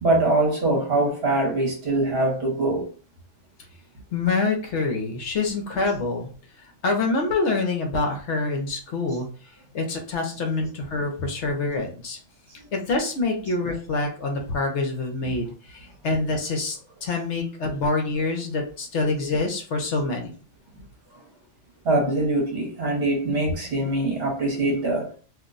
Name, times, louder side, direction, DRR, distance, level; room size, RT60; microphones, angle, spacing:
voice 1, 0.0-2.9 21.8-25.1, right 2 dB, 50° right, 1.1 m, -23 dB
voice 2, 4.1-6.3 6.8-9.3 9.7-12.2 12.7-20.3, left 3 dB, 65° left, 0.9 m, -26 dB
2.6 x 2.1 x 3.7 m
omnidirectional pair, 1.4 m